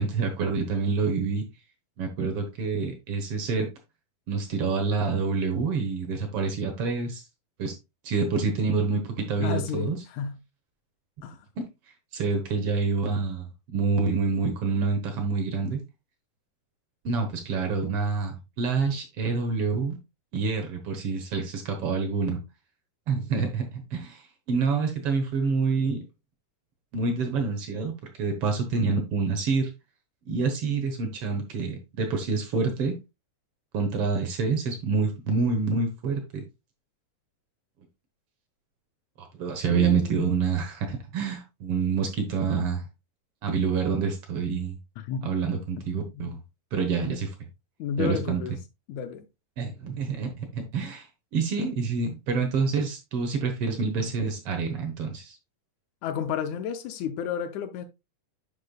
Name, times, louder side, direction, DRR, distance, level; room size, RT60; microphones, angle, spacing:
voice 1, 0.0-1.4 2.0-3.7 4.3-7.2 7.6-7.7 8.0-10.0 11.6-11.7 12.1-15.8 17.0-20.0 20.3-22.4 23.1-24.2 24.5-26.0 26.9-27.9 28.2-29.7 30.3-33.0 33.7-36.4 39.2-42.8 43.4-44.8 45.2-46.4 46.7-47.3 48.0-48.4 49.6-51.1 51.3-55.4, right 4 dB, 65° right, 1.4 m, -27 dB
voice 2, 9.4-10.4 11.2-11.4 39.7-40.2 45.0-45.3 45.8-46.3 47.8-48.5 48.9-49.2 54.0-54.1 56.0-57.9, left 8 dB, 80° left, 1.7 m, -32 dB
10.0 x 5.3 x 2.2 m
omnidirectional pair, 3.9 m